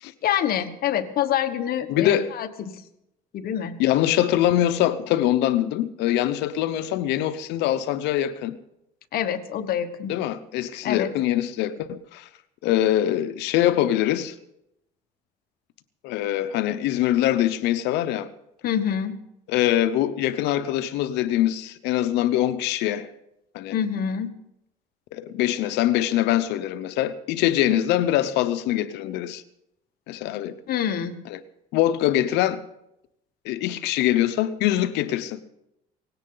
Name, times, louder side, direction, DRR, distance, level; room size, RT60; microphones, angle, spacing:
voice 1, 0.2-2.7 3.3-3.8 9.1-10.1 10.8-11.1 18.6-19.2 23.7-24.3 30.7-31.2, left 9 dB, 65° left, 1.3 m, -26 dB
voice 2, 1.9-2.3 3.8-8.5 10.1-12.3 12.6-14.3 16.0-18.3 19.5-23.1 23.5-23.8 25.1-29.4 30.1-30.5 31.3-31.4 31.7-32.6 33.4-35.4, left 12 dB, 90° left, 0.8 m, -23 dB
18.5 x 16.5 x 3.9 m
cardioid pair, 110°, 17 cm